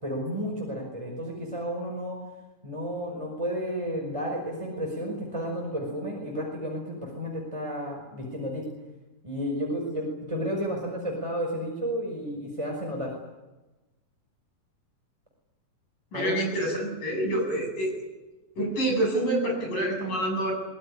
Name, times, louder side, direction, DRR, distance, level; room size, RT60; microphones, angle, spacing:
voice 1, 0.0-2.2 2.6-8.7 9.2-13.1 16.1-16.4, equal, 10° right, -1 dB, 4.9 m, -32 dB
voice 2, 16.1-17.9 18.6-20.5, right 1 dB, 90° left, 2 dB, 9.8 m, -27 dB
25.0 x 20.5 x 9.9 m, 1.1 s
omnidirectional pair, 3.7 m